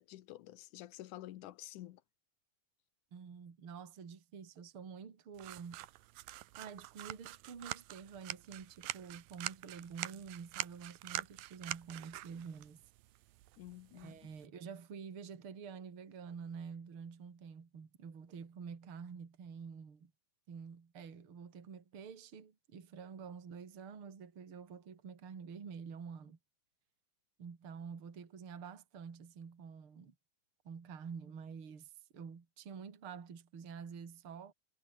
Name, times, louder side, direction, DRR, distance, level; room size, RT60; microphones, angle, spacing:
voice 1, 0.0-2.0 13.6-14.2, left 15 dB, 70° left, 2.2 m, -50 dB
voice 2, 3.1-5.8 6.6-12.8 13.9-20.1 20.5-26.4 27.4-30.1 30.6-34.5, right 6 dB, 40° right, 3.3 m, -48 dB
sound 1, 5.4-14.5, right 17 dB, 80° right, 2.5 m, -45 dB
omnidirectional pair, 4.2 m